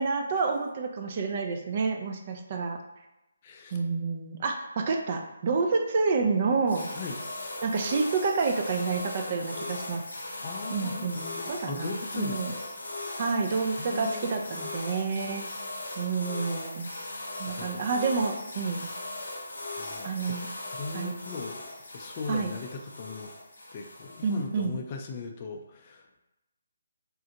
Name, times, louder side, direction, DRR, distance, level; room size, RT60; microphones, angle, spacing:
voice 1, 0.0-2.8 3.7-6.9 7.6-10.0 10.7-12.5 13.2-15.4 16.0-16.9 17.4-18.9 20.0-20.5 20.9-21.1 22.3-22.5 24.2-24.7, right 4 dB, 40° right, 3 dB, 0.4 m, -29 dB
voice 2, 3.4-3.8 6.9-7.2 10.4-12.6 13.8-14.6 17.5-17.9 19.8-20.4 20.7-21.7 21.9-23.3 23.7-26.1, left 4 dB, 35° left, 2 dB, 0.4 m, -39 dB
sound 1, 6.7-24.7, left 2 dB, 85° left, 0.6 m, -38 dB
3.6 x 2.1 x 2.8 m, 0.96 s
hypercardioid pair, 155°, 0 cm